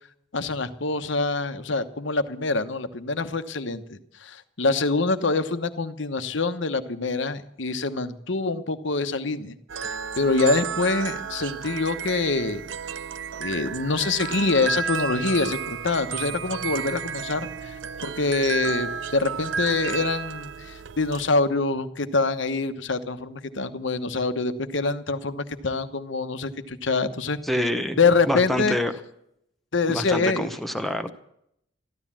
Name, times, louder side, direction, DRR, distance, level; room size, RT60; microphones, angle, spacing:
voice 1, 0.3-12.6 13.4-17.8 18.0-27.4 28.0-28.8 29.7-30.5, left 3 dB, 65° left, 11 dB, 1.1 m, -25 dB
sound 1, 9.7-21.3, right 6 dB, 65° right, 0.7 m, -32 dB
voice 2, 27.4-28.0 28.3-28.9 29.9-31.1, equal, ahead, 8 dB, 0.8 m, -26 dB
14.0 x 12.5 x 7.4 m, 0.75 s
head